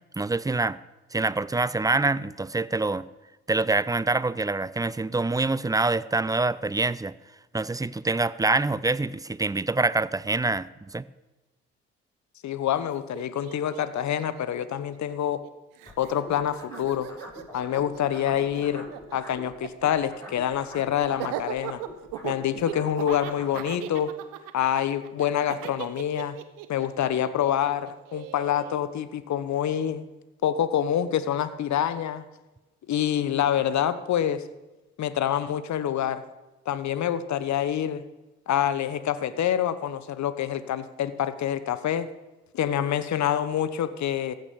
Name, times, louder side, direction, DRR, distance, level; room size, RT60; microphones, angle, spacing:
voice 1, 0.2-0.8 1.1-3.1 3.5-7.1 7.5-11.0, right 3 dB, 10° right, 18 dB, 0.5 m, -25 dB
voice 2, 12.4-15.4 16.0-17.1 17.5-21.8 22.2-24.1 24.5-26.4 26.7-30.0 30.4-32.2 32.9-34.4 35.0-36.2 36.7-38.0 38.5-42.1 42.5-44.3, left 10 dB, 55° left, 14 dB, 1.1 m, -26 dB
Laughter, 12.8-12.9 13.1-15.5 15.8-28.8, right 13 dB, 70° right, 1.1 m, -39 dB
sound 1, 15.9-19.5 19.8-23.6, left 1 dB, 10° left, 5.9 m, -44 dB
15.0 x 9.2 x 7.1 m, 1.1 s
hypercardioid pair, 45°, 35 cm